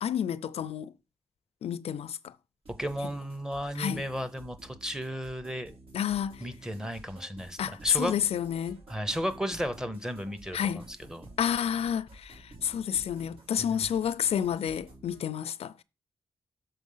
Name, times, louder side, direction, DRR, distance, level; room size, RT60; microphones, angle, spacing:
voice 1, 0.0-0.9 1.6-2.3 3.8-4.0 5.9-6.4 7.6-8.8 10.5-10.8 11.4-15.8, left 9 dB, 85° left, 0.4 m, -30 dB
sound 1, 2.6-15.2, right 2 dB, 70° right, 2.9 m, -52 dB
voice 2, 2.8-5.7 6.4-8.1 8.9-11.3 13.6-13.8, equal, 5° right, 0.7 m, -34 dB
6.3 x 4.0 x 5.5 m
wide cardioid pair, 130°, 10 cm